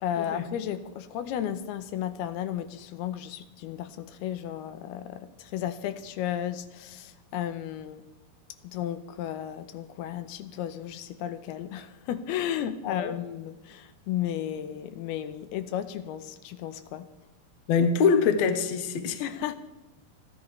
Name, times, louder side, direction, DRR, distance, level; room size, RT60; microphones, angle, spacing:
voice 1, 0.0-8.0 8.6-17.1 19.2-19.6, left 10 dB, 85° left, 2.7 m, -34 dB
voice 2, 17.7-19.2, left 5 dB, 65° left, 1.7 m, -24 dB
29.0 x 11.0 x 3.3 m
omnidirectional pair, 4.5 m